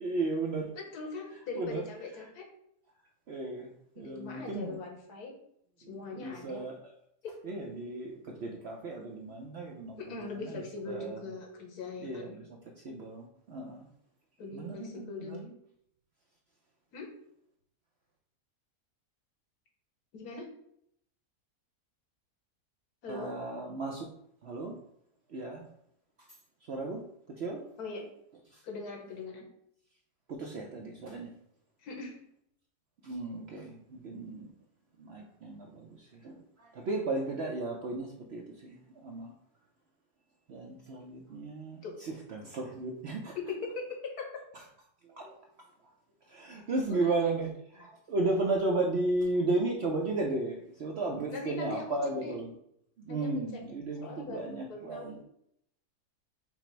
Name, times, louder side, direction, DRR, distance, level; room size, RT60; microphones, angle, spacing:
voice 1, 0.0-0.7 1.6-1.8 3.3-4.8 5.8-6.9 7.4-11.2 12.0-12.4 12.8-13.8 14.5-15.4 23.1-24.1 24.4-24.8 25.3-25.6 26.7-27.0 27.4-27.6 30.3-31.3 33.0-34.5 35.0-39.3 40.5-43.4 45.1-45.3 46.3-52.5 53.0-55.2, right 2 dB, 60° right, 0 dB, 0.7 m, -34 dB
voice 2, 0.8-2.5 4.0-5.3 5.9-6.7 7.2-7.3 10.0-12.3 14.4-15.5 16.9-17.1 20.1-20.5 23.0-23.3 27.8-28.1 28.6-29.5 31.8-32.2 41.8-41.9 43.3-44.3 46.9-47.2 51.3-51.9 52.2-52.3 53.1-53.6 54.0-55.2, left 4 dB, 75° left, 2 dB, 1.5 m, -41 dB
5.7 x 2.0 x 4.5 m, 0.72 s
omnidirectional pair, 1.7 m